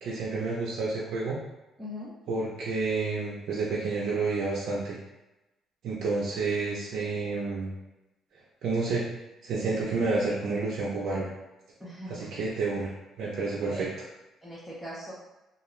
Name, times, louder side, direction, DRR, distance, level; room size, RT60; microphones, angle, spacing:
voice 1, 0.0-1.4 2.3-5.0 5.8-7.7 8.6-9.0 9.4-11.3 12.1-12.9 13.2-13.9, right 3 dB, 60° right, -5 dB, 0.6 m, -29 dB
voice 2, 1.8-2.1 11.8-12.3 13.6-13.9 14.4-15.1, equal, 5° left, -9 dB, 0.6 m, -40 dB
2.4 x 2.2 x 3.1 m, 0.99 s
cardioid pair, 140°, 0 cm